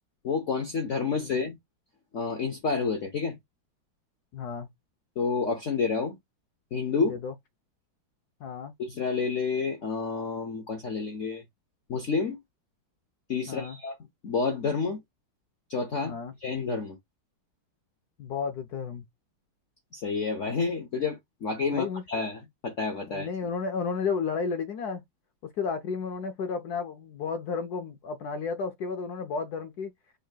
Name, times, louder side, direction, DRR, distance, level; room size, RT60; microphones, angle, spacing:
voice 1, 0.2-1.6 2.1-3.4 5.2-6.2 6.7-7.1 8.8-11.4 11.9-12.4 13.3-13.9 14.2-15.0 15.7-17.0 19.9-23.3, left 5 dB, 50° left, 1.0 m, -29 dB
voice 2, 4.3-4.7 7.0-7.3 8.4-8.7 13.5-13.8 16.0-16.3 18.2-19.1 21.6-22.0 23.1-25.0 25.4-29.9, left 5 dB, 75° left, 0.9 m, -32 dB
5.3 x 2.9 x 2.2 m
omnidirectional pair, 2.2 m